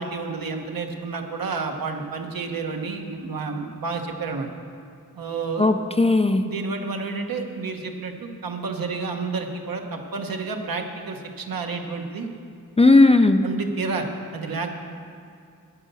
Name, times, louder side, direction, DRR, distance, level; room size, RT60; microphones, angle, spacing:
voice 1, 0.0-4.5 5.1-5.7 6.4-12.3 13.4-14.8, right 4 dB, 80° right, 3 dB, 1.2 m, -30 dB
voice 2, 5.6-6.4 12.8-13.5, left 2 dB, 20° left, 7 dB, 0.4 m, -16 dB
9.7 x 9.2 x 6.9 m, 2.4 s
wide cardioid pair, 135°, 34 cm